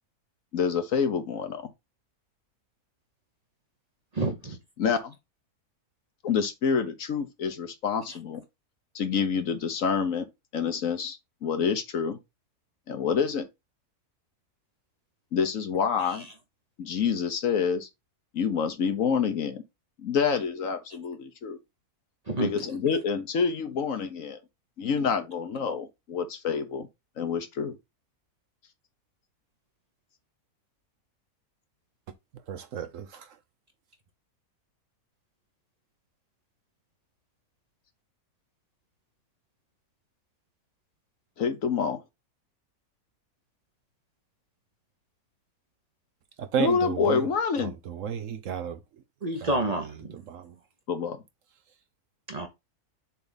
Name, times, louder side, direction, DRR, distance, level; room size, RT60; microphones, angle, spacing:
voice 1, 0.5-1.6 4.8-5.1 6.2-8.4 8.9-10.3 10.5-12.2 12.9-13.5 15.3-16.3 16.8-17.9 18.3-19.6 20.0-21.6 22.4-24.4 24.8-26.9 27.2-27.8 41.4-42.0 46.6-47.7 50.9-51.2, left 6 dB, 60° left, 1.3 m, -27 dB
voice 2, 4.1-4.6 22.3-22.5 49.2-50.2 52.3-52.5, right 2 dB, 30° right, 0.9 m, -29 dB
voice 3, 32.5-33.3 46.4-47.2 47.6-48.8 49.4-49.6 50.3-50.5, right 8 dB, 65° right, 1.0 m, -32 dB
7.0 x 3.4 x 4.0 m
omnidirectional pair, 1.6 m